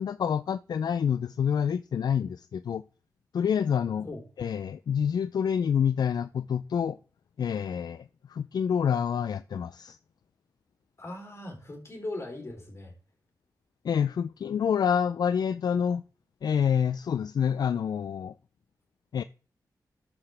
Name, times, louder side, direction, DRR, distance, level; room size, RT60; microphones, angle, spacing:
voice 1, 0.0-2.8 3.3-4.1 4.4-7.0 7.4-10.0 13.8-16.0 16.4-18.3 19.1-19.2, left 7 dB, 65° left, 0.3 m, -27 dB
voice 2, 11.0-12.9, left 2 dB, 40° left, 3.5 m, -39 dB
13.0 x 5.7 x 3.3 m
cardioid pair, 65°, 7 cm